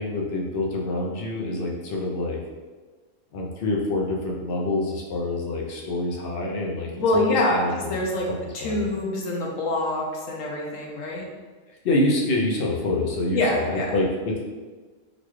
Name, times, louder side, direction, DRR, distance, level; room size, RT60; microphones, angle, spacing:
voice 1, 0.0-2.4 3.3-8.0 8.3-8.9 11.8-14.4, left 2 dB, 55° left, -2 dB, 0.8 m, -26 dB
voice 2, 6.9-8.3 8.5-11.2 13.3-13.9, left 1 dB, 80° left, -2 dB, 1.1 m, -25 dB
4.0 x 2.3 x 3.1 m, 1.4 s
omnidirectional pair, 1.3 m